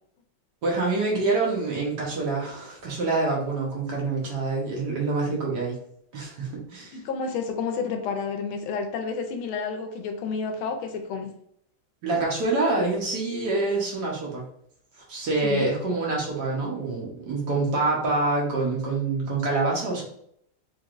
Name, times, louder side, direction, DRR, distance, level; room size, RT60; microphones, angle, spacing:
voice 1, 0.6-5.8 6.1-7.0 12.0-14.4 15.1-20.0, right 3 dB, 60° right, -2 dB, 1.3 m, -26 dB
voice 2, 6.9-11.3 15.4-15.7, left 5 dB, 80° left, 5 dB, 1.4 m, -30 dB
3.9 x 3.2 x 2.4 m, 0.69 s
omnidirectional pair, 2.3 m